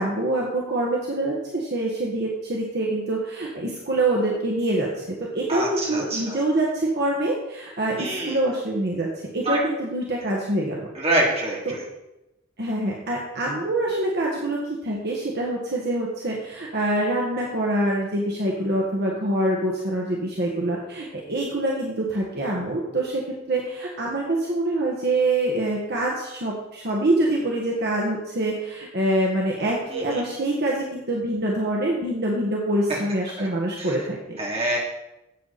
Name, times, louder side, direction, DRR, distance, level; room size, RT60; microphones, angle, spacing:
voice 1, 0.0-4.9 5.2-9.1 9.3-10.8 11.6-11.7 12.6-34.4, right 1 dB, 50° right, -2 dB, 1.7 m, -25 dB
voice 2, 5.5-6.4 7.9-8.4 9.4-9.6 10.9-11.8 29.9-30.2 33.4-33.5 33.8-33.9 34.4-34.8, right 1 dB, 30° right, -3 dB, 3.0 m, -26 dB
12.5 x 8.5 x 4.2 m, 0.95 s
head